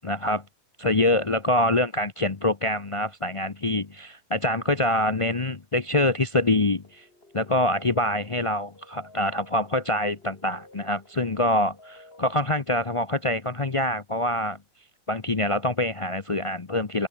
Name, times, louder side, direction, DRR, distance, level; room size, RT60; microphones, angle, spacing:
voice 1, 0.0-0.4 0.8-7.0 7.3-14.6 15.1-17.1, left 1 dB, 25° left, 0.8 m, -25 dB
sound 1, 6.8-12.3, left 2 dB, 40° left, 4.5 m, -53 dB
omnidirectional pair, 1.5 m